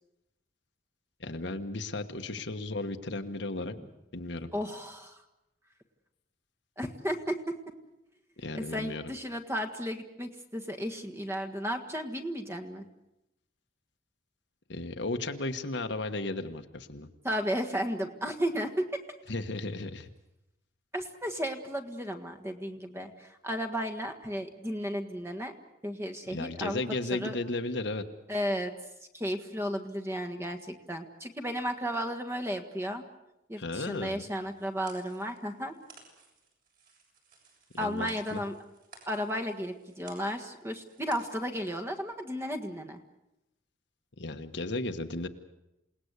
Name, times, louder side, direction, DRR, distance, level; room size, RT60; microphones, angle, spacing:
voice 1, 1.2-3.7 4.1-4.5 8.4-9.1 14.7-17.1 19.3-20.1 26.3-28.0 33.6-34.2 37.7-38.4 44.2-45.3, left 2 dB, 60° left, 7 dB, 1.4 m, -35 dB
voice 2, 4.5-5.2 6.8-7.5 8.5-12.9 17.2-18.8 20.9-25.5 25.8-26.8 27.1-27.3 28.3-28.7 29.1-33.0 33.5-35.8 37.8-38.5 39.1-43.0, equal, 15° right, 6 dB, 1.6 m, -34 dB
sound 1, 34.3-41.8, right 4 dB, 50° right, 7.3 m, -57 dB
28.0 x 18.5 x 8.2 m, 0.92 s
head